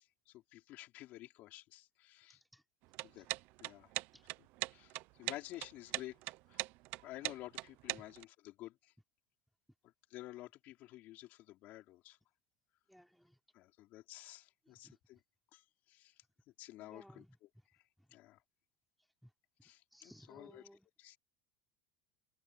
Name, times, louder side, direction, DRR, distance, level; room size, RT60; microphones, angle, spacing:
voice 1, 0.0-2.4 3.0-3.3 3.6-3.9 4.7-6.2 6.5-6.6 7.0-8.9 10.1-12.2 13.5-15.2 15.5-16.2 16.6-17.2 18.1-18.4 19.6-20.6 21.0-21.2, left 16 dB, 50° left, 5.0 m, -52 dB
voice 2, 2.3-2.6 4.1-4.2 8.0-8.1 12.9-13.4 14.6-15.0 16.8-17.7 18.0-18.2 19.2-19.3 19.6-20.9, equal, ahead, 3.3 m, -61 dB
sound 1, 2.8-8.2, right 20 dB, 55° right, 0.7 m, -40 dB
supercardioid pair, 140°, 4 cm